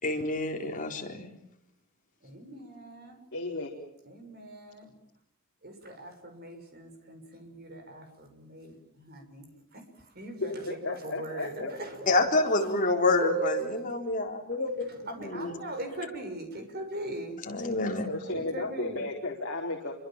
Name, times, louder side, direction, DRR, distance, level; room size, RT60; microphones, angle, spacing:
voice 1, 0.0-1.3 12.1-14.9 15.2-15.5 17.4-18.2, left 2 dB, 35° left, 3 dB, 4.0 m, -28 dB
voice 2, 2.2-3.2 4.1-4.9 5.6-9.8 10.1-10.8 11.0-12.1 13.1-13.7 15.1-17.3 18.2-19.0, right 2 dB, 45° right, 5 dB, 6.3 m, -39 dB
voice 3, 3.3-3.7 10.4-11.7 18.1-19.9, left 2 dB, 55° left, -1 dB, 4.2 m, -34 dB
28.0 x 24.5 x 7.5 m, 0.79 s
head